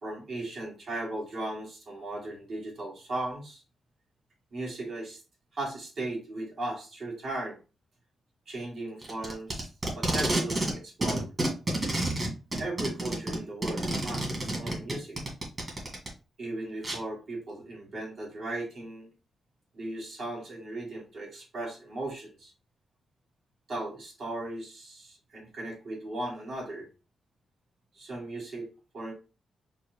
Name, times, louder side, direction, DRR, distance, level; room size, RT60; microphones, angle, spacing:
voice 1, 0.0-3.6 4.5-5.2 5.5-7.6 8.5-11.3 12.6-15.2 16.4-19.1 19.7-22.5 23.7-26.9 27.9-28.7 28.9-29.1, right 2 dB, 55° right, -2 dB, 2.3 m, -37 dB
Packing tape duct tape, 9.0-10.7 11.0-16.1 16.8-17.0, right 1 dB, 30° right, 2.0 m, -29 dB
4.7 x 2.4 x 4.6 m, 0.32 s
wide cardioid pair, 130°, 0 cm